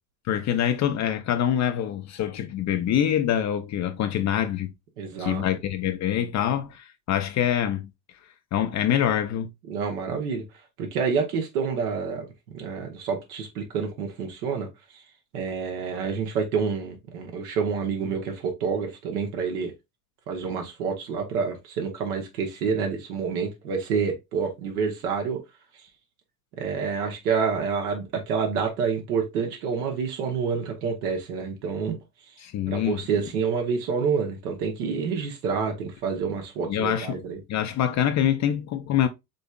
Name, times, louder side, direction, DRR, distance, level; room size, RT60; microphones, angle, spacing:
voice 1, 0.3-4.7 5.2-7.9 8.5-9.5 32.4-33.0 36.7-37.2 37.5-39.1, left 10 dB, 35° left, 0.6 m, -25 dB
voice 2, 5.0-5.4 9.7-10.4 10.8-12.3 12.5-14.7 14.9-15.0 15.3-19.7 20.3-25.4 26.6-32.0 32.7-37.4, right 5 dB, 70° right, 1.3 m, -28 dB
5.3 x 3.4 x 2.3 m
hypercardioid pair, 70°, 46 cm